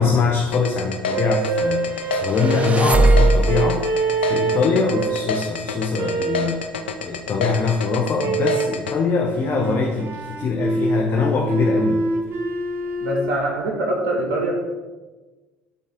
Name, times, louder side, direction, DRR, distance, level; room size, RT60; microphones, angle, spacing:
voice 1, 0.0-3.9 4.2-6.6 7.0-12.0, left 5 dB, 45° left, 1 dB, 1.0 m, -22 dB
sound 1, 0.5-8.9, left 4 dB, 85° left, 0.5 m, -28 dB
sound 2, 1.1-5.3 5.9-6.6 8.2-8.8 9.4-13.4, right 3 dB, 45° right, 0.9 m, -25 dB
sound 3, 2.1-3.8, right 2 dB, 25° right, 0.4 m, -19 dB
voice 2, 13.0-14.5, right 1 dB, 65° right, 0 dB, 1.9 m, -24 dB
11.5 x 4.1 x 3.7 m, 1.2 s
hypercardioid pair, 65°, 6 cm